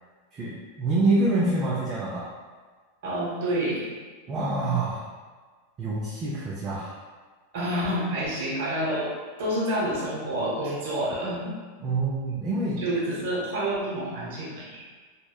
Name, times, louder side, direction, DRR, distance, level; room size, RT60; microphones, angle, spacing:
voice 1, 0.3-2.2 4.3-5.0 5.8-7.0 11.8-12.8, right 2 dB, 25° right, -7 dB, 0.4 m, -26 dB
voice 2, 3.0-3.9 7.5-11.6 12.8-14.8, right 1 dB, 65° right, -6 dB, 0.7 m, -28 dB
2.7 x 2.1 x 2.2 m, 1.5 s
supercardioid pair, 150°, 0 cm